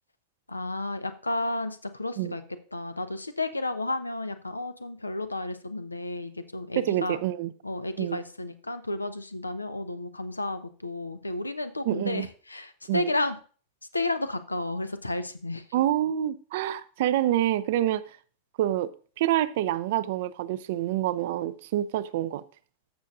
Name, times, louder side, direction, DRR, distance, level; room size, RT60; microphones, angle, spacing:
voice 1, 0.5-2.4 2.7-7.2 7.6-13.4 13.9-15.6, left 2 dB, 80° left, 11 dB, 0.7 m, -32 dB
voice 2, 6.8-7.5 8.0-8.2 11.9-12.3 12.9-13.1 15.7-18.0 18.6-18.9 19.2-22.4, right 13 dB, 55° right, 15 dB, 0.5 m, -27 dB
14.0 x 6.3 x 2.5 m, 0.40 s
figure-of-eight pair, 90°, 0 cm